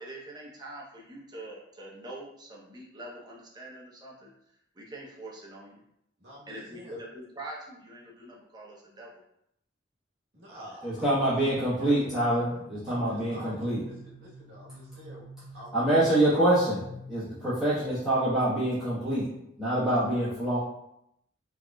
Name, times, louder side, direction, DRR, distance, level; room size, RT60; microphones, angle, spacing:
voice 1, 0.0-4.3 4.7-5.8 6.5-9.2, right 1 dB, 20° right, -4 dB, 0.7 m, -44 dB
voice 2, 6.2-7.0 10.3-11.9 12.9-15.2 15.5-16.2 17.5-17.9, equal, 55° right, -5 dB, 1.2 m, -47 dB
voice 3, 10.8-13.8 15.7-19.3 19.6-20.6, right 1 dB, 5° right, -13 dB, 1.2 m, -26 dB
sound 1, 12.7-17.9, equal, 15° left, 0.5 m, -48 dB
4.8 x 2.9 x 2.3 m, 0.77 s
head